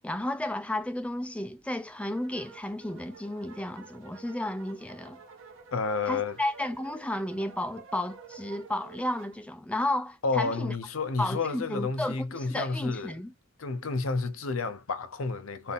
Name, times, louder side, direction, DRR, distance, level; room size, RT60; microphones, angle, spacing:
voice 1, 0.0-5.2 6.0-10.8 11.2-13.3, left 1 dB, 5° left, 0.4 m, -33 dB
sound 1, 2.0-9.4, right 5 dB, 60° right, 1.4 m, -50 dB
voice 2, 5.7-6.4 10.2-13.2 13.6-15.7, left 4 dB, 70° left, 0.7 m, -30 dB
4.2 x 2.7 x 3.5 m
head